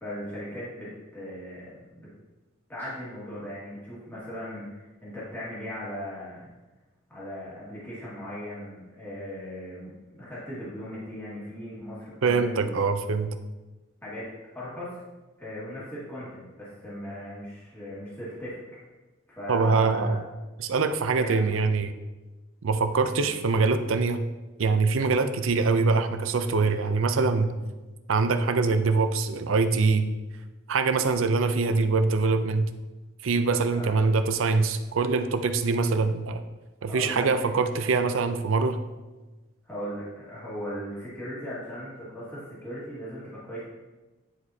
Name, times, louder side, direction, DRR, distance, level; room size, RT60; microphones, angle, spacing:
voice 1, 0.0-2.1 2.7-6.5 7.1-12.9 14.0-15.0 15.4-18.6 19.3-20.2 21.1-21.6 23.2-23.3 33.7-34.1 36.9-37.6 39.6-43.6, equal, 10° left, -9 dB, 1.8 m, -38 dB
voice 2, 12.2-13.3 19.5-20.2 20.6-21.9 22.6-24.2 24.6-27.5 28.1-30.1 30.7-32.7 33.2-36.4 36.8-38.8, right 4 dB, 90° right, 9 dB, 0.5 m, -24 dB
9.7 x 4.8 x 2.8 m, 1.1 s
head